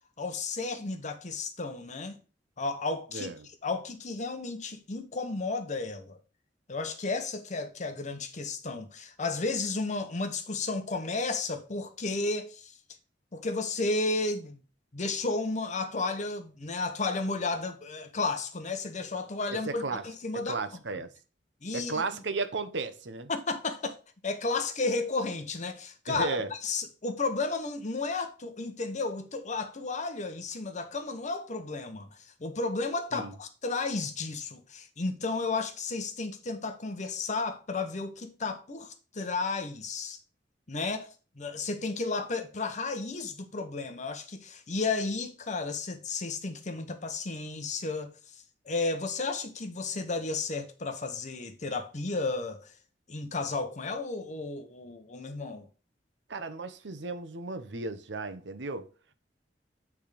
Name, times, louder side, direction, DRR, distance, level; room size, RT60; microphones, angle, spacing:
voice 1, 0.2-2.2 2.6-3.3 3.6-6.2 6.7-12.7 13.3-14.6 14.9-20.6 21.6-22.0 23.3-24.0 24.2-26.4 26.6-32.1 32.4-40.2 40.7-48.1 48.6-52.7 53.1-55.7, left 3 dB, 40° left, 1.0 m, -33 dB
voice 2, 19.5-20.0 20.5-21.1 21.7-23.3 26.1-26.5 33.1-33.4 56.3-58.9, right 3 dB, 85° right, 0.9 m, -34 dB
8.6 x 3.6 x 5.0 m
head